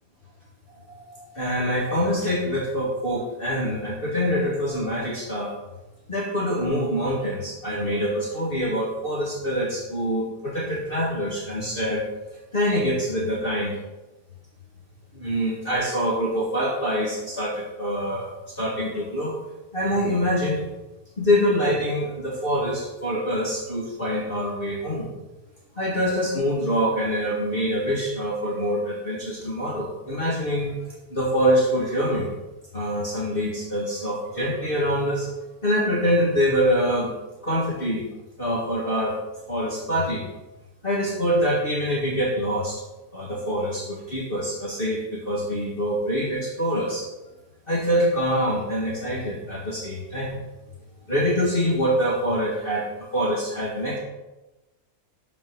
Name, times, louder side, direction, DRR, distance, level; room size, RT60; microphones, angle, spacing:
voice 1, 0.7-5.5 6.1-12.0 12.5-13.8 15.1-19.4 19.7-20.6 21.2-25.1 25.8-30.7 31.1-32.3 32.7-35.3 35.6-37.1 37.4-38.0 38.4-39.2 39.5-40.2 40.8-42.8 43.1-47.0 47.7-50.4 51.1-54.0, equal, 40° left, -4 dB, 1.9 m, -25 dB
12.0 x 5.3 x 6.0 m, 1.0 s
omnidirectional pair, 1.5 m